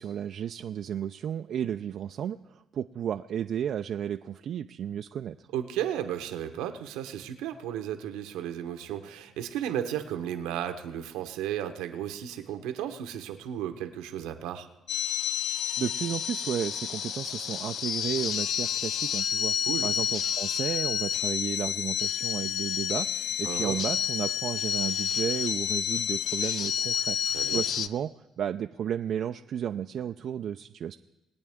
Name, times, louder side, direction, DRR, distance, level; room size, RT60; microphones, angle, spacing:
voice 1, 0.0-5.4 15.8-19.6 19.8-27.2 27.5-31.0, right 9 dB, 60° right, 7 dB, 0.3 m, -33 dB
voice 2, 5.5-14.7 19.7-19.9 23.4-23.8 27.3-27.6, right 10 dB, 85° right, 7 dB, 0.9 m, -34 dB
sound 1, 14.9-27.9, left 9 dB, 65° left, 0.4 m, -30 dB
21.0 x 8.6 x 3.6 m, 0.97 s
supercardioid pair, 70°, 0 cm